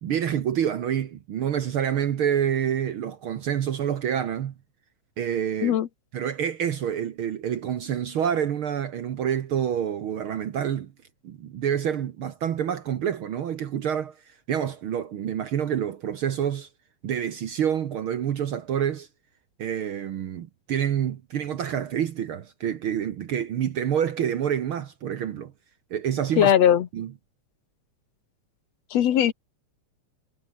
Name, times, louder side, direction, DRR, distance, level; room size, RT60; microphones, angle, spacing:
voice 1, 0.0-4.5 5.2-5.8 6.1-10.9 11.2-14.1 14.5-16.7 17.0-19.1 19.6-25.5 25.9-26.5 26.9-27.1, right 9 dB, 60° right, 1.6 m, -27 dB
voice 2, 26.4-26.9 28.9-29.3, left 10 dB, 65° left, 2.3 m, -19 dB
omnidirectional pair, 3.3 m